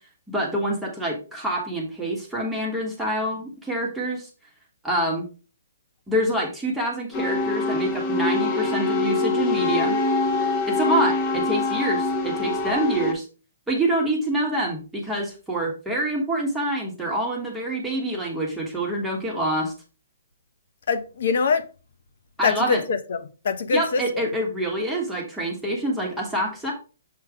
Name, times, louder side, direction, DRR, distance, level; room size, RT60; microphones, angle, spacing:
voice 1, 0.3-4.3 4.8-5.3 6.1-10.0 10.7-13.3 13.7-19.7 22.4-22.8 23.7-26.7, right 1 dB, 5° right, 1.3 m, -26 dB
sound 1, 7.1-13.1, left 3 dB, 25° left, 1.0 m, -24 dB
voice 2, 20.9-21.6 22.4-24.2, left 5 dB, 60° left, 1.1 m, -24 dB
6.8 x 3.2 x 4.8 m
hypercardioid pair, 155°, 0 cm